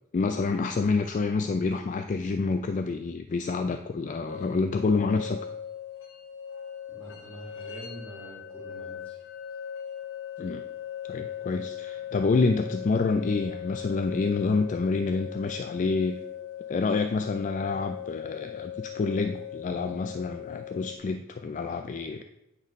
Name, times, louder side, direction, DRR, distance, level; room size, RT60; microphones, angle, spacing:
voice 1, 0.1-5.4 10.4-10.6 11.1-16.2 16.7-22.2, left 4 dB, 35° left, 7 dB, 0.3 m, -28 dB
sound 1, 4.3-21.0, left 9 dB, 60° left, 0.9 m, -39 dB
voice 2, 6.9-9.2, right 1 dB, 5° left, -7 dB, 3.3 m, -45 dB
9.1 x 4.1 x 5.2 m, 0.87 s
head